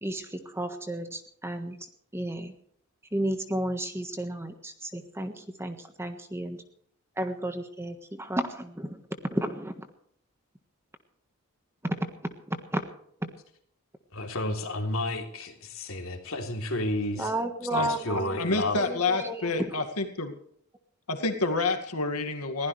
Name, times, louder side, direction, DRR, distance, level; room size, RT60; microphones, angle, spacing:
voice 1, 0.0-1.9 2.1-2.5 3.1-6.6 7.2-9.8 11.8-12.1 12.5-12.8 13.2-13.3 17.2-18.4 18.8-19.7, right 1 dB, 10° right, 7 dB, 1.4 m, -32 dB
voice 2, 14.1-17.3 17.8-18.8, left 1 dB, 65° left, 2 dB, 3.3 m, -31 dB
voice 3, 18.4-20.3 21.1-22.7, left 3 dB, 90° left, 6 dB, 2.2 m, -28 dB
22.0 x 16.0 x 3.3 m, 0.65 s
head